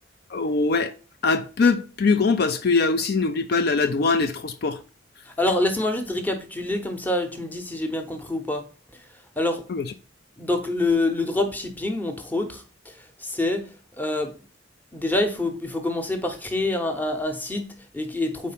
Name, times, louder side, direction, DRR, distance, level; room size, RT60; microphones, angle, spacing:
voice 1, 0.3-0.9 1.2-4.8 9.7-9.8, left 4 dB, 55° left, 0.4 m, -22 dB
voice 2, 5.2-8.7 8.9-9.0 9.4-9.6 10.4-14.3 14.9-18.5, left 2 dB, 10° left, 0.8 m, -26 dB
4.7 x 4.2 x 5.6 m
head